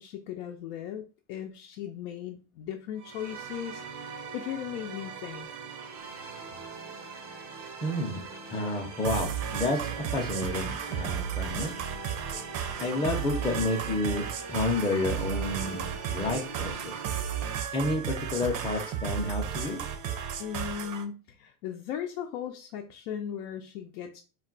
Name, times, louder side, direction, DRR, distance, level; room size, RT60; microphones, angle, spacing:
voice 1, 0.0-5.5 20.4-24.2, left 9 dB, 75° left, 3 dB, 0.5 m, -37 dB
sound 1, 3.0-17.6, right 5 dB, 90° right, 0.8 m, -42 dB
voice 2, 7.8-8.2 8.5-11.7 12.8-17.0 17.7-19.8, left 2 dB, 10° left, 1 dB, 0.5 m, -30 dB
sound 2, 9.0-21.0, right 9 dB, 45° right, 0.5 m, -34 dB
2.3 x 2.2 x 3.8 m, 0.35 s
supercardioid pair, 105°, 46 cm